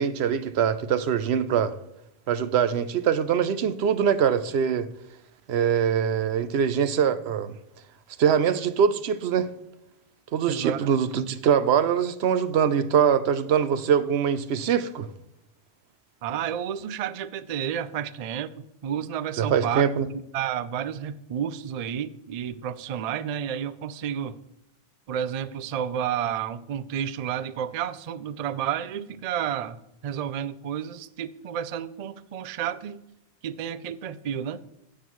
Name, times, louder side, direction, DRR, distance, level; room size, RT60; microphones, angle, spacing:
voice 1, 0.0-1.7 2.3-4.9 5.5-7.6 8.2-9.5 10.3-15.1 19.4-20.1, right 8 dB, 85° right, 0.9 m, -23 dB
voice 2, 10.5-10.8 16.2-19.8 20.1-24.4 25.1-33.0 33.4-34.6, right 9 dB, 55° right, 0.4 m, -31 dB
16.5 x 6.2 x 3.1 m
omnidirectional pair, 1.0 m